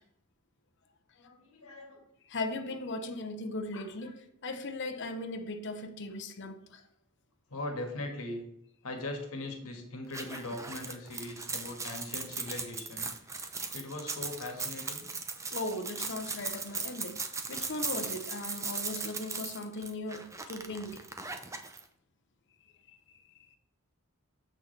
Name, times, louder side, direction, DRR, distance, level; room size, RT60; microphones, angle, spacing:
voice 1, 1.1-2.0 3.7-4.1 7.5-8.4 8.8-13.1 13.7-15.1, left 2 dB, 75° left, 1.6 m, -40 dB
voice 2, 2.3-4.2 4.4-6.8 15.5-21.0 22.9-23.0, left 2 dB, 55° left, 0.8 m, -38 dB
sound 1, 10.1-21.8, right 4 dB, 15° right, 0.5 m, -38 dB
7.4 x 6.0 x 3.2 m
head